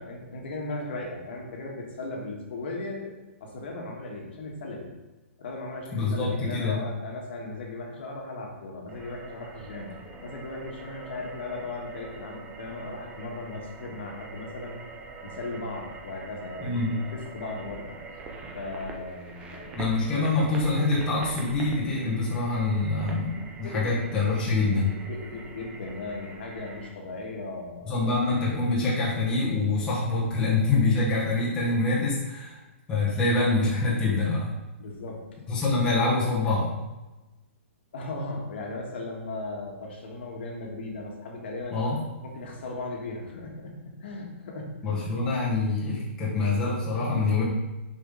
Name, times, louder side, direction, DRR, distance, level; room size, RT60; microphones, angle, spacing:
voice 1, 0.0-3.1 3.4-4.9 5.4-9.9 10.2-14.8 15.2-18.0 18.5-19.8 23.6-24.1 24.9-28.0 28.5-28.6 34.8-35.3 37.9-41.8 42.2-45.1, left 2 dB, 55° left, 0 dB, 1.5 m, -37 dB
voice 2, 5.9-6.8 16.6-16.9 19.7-24.9 27.9-32.5 32.9-34.5 35.5-36.7 41.7-42.0 44.8-47.4, left 3 dB, 10° left, -7 dB, 1.2 m, -25 dB
sound 1, 8.9-26.9, right 3 dB, 15° right, 0.6 m, -44 dB
7.2 x 5.0 x 3.8 m, 1.1 s
hypercardioid pair, 170°, 7 cm